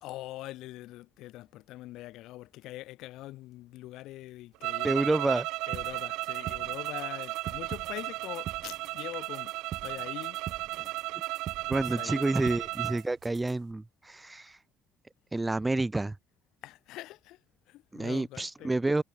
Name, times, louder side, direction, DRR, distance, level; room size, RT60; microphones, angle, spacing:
voice 1, 0.0-5.0 5.7-9.5 9.8-10.4 11.8-12.3 16.6-17.4 17.7-18.7, left 16 dB, 70° left, 1.3 m, -43 dB
sound 1, 4.6-13.0, right 20 dB, 90° right, 0.4 m, -35 dB
voice 2, 4.8-5.5 10.8-10.9 11.7-14.6 15.3-16.2 17.9-19.0, right 2 dB, 10° right, 0.3 m, -29 dB
sound 2, 5.7-13.7, right 11 dB, 50° right, 0.8 m, -44 dB
cardioid pair, 160°, 0 cm